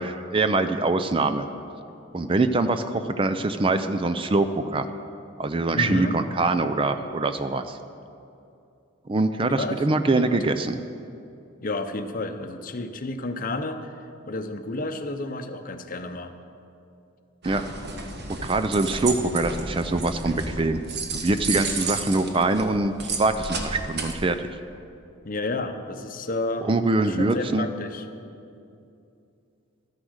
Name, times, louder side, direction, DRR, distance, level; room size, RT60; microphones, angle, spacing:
voice 1, 0.0-1.5 2.1-4.9 5.4-7.8 9.1-10.8 17.4-17.6 18.4-20.8 21.1-24.4 26.6-27.7, right 2 dB, 25° right, 9 dB, 0.4 m, -24 dB
voice 2, 5.7-6.2 9.6-9.8 10.1-10.4 11.6-16.4 25.2-26.7 27.0-28.0, left 2 dB, 40° left, 8 dB, 0.7 m, -31 dB
sound 1, 17.4-24.1, right 3 dB, 50° right, 1.2 m, -32 dB
13.0 x 9.8 x 6.4 m, 2.6 s
head